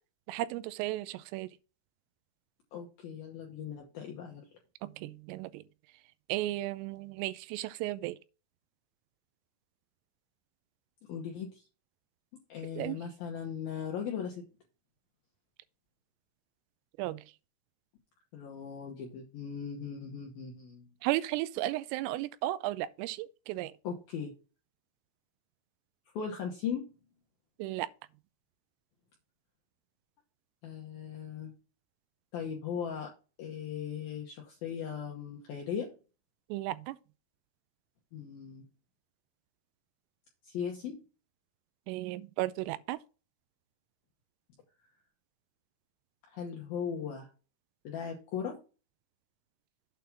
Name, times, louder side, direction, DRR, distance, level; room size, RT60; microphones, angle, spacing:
voice 1, 0.3-1.5 5.0-5.6 6.3-8.2 12.8-13.0 17.0-17.2 21.0-23.7 27.6-27.9 36.5-37.0 41.9-43.0, right 16 dB, 85° right, 3.2 m, -34 dB
voice 2, 2.7-4.5 11.1-11.6 12.5-14.5 18.3-20.8 23.8-24.3 26.2-26.9 30.6-31.5 32.3-33.1 33.4-35.9 38.1-38.7 40.4-41.0 46.3-47.3 47.8-48.6, left 7 dB, 80° left, 2.1 m, -38 dB
8.4 x 3.6 x 5.9 m
omnidirectional pair, 5.9 m